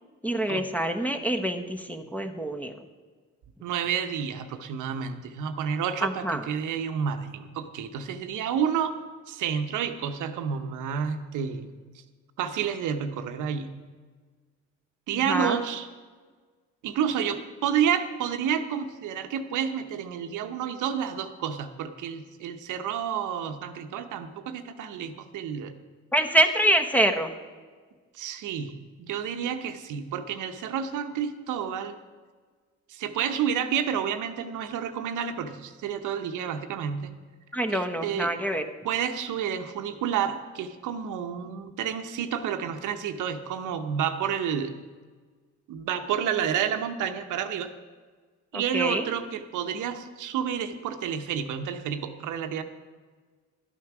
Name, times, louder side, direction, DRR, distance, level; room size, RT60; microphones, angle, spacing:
voice 1, 0.2-2.7 6.0-6.4 15.3-15.6 26.1-27.3 37.5-38.6 48.5-49.0, right 1 dB, 5° left, 7 dB, 1.0 m, -25 dB
voice 2, 3.6-8.9 9.3-11.7 12.4-13.7 15.1-15.9 16.8-25.7 28.1-31.9 32.9-37.1 37.7-38.3 38.8-44.7 45.7-47.7 48.5-52.6, right 8 dB, 85° right, 8 dB, 0.9 m, -30 dB
12.0 x 8.3 x 6.0 m, 1.5 s
cardioid pair, 90°, 30 cm